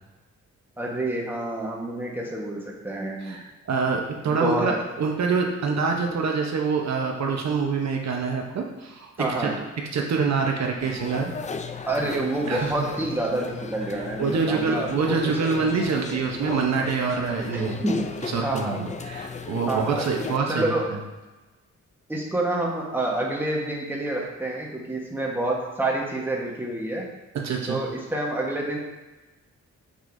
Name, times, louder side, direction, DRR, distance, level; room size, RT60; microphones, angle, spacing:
voice 1, 0.8-3.4 4.3-4.7 9.2-9.5 11.9-15.4 17.5-18.0 18.4-18.8 19.7-20.0 20.5-20.9 22.1-27.1 27.7-28.8, right 1 dB, 5° right, -2 dB, 1.2 m, -28 dB
voice 2, 3.2-9.5 9.9-11.3 12.5-12.7 14.0-17.8 18.2-20.7 27.3-27.8, right 5 dB, 60° right, 1 dB, 0.9 m, -26 dB
sound 1, 10.8-20.4, left 5 dB, 25° left, 0.4 m, -36 dB
6.8 x 6.3 x 2.6 m, 1.1 s
cardioid pair, 105°, 30 cm